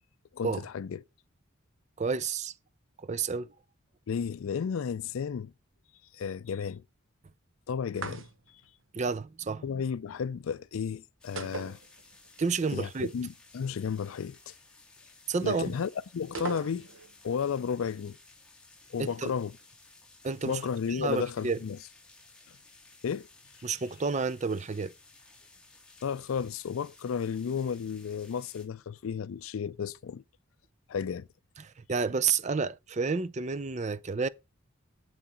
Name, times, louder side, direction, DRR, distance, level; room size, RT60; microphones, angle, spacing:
voice 1, 0.3-1.0 4.1-5.5 6.1-6.8 7.7-8.6 9.6-11.8 12.7-14.5 15.4-16.9 17.2-18.2 18.9-19.6 20.4-21.8 22.5-22.6 23.0-23.3 23.7-23.8 26.0-30.2 30.9-31.3, left 6 dB, 75° left, 0.4 m, -33 dB
voice 2, 2.0-2.5 3.0-3.5 8.9-9.6 12.4-13.1 15.3-15.7 19.0-19.3 20.2-20.6 21.0-21.6 23.6-24.9 31.6-34.3, right 4 dB, 35° right, 0.5 m, -30 dB
sound 1, 7.9-8.7 11.4-12.4 12.7-12.8 16.3-17.1, right 3 dB, 65° right, 1.3 m, -39 dB
sound 2, 11.2-28.7, left 3 dB, 5° left, 1.6 m, -57 dB
7.9 x 7.4 x 4.2 m
head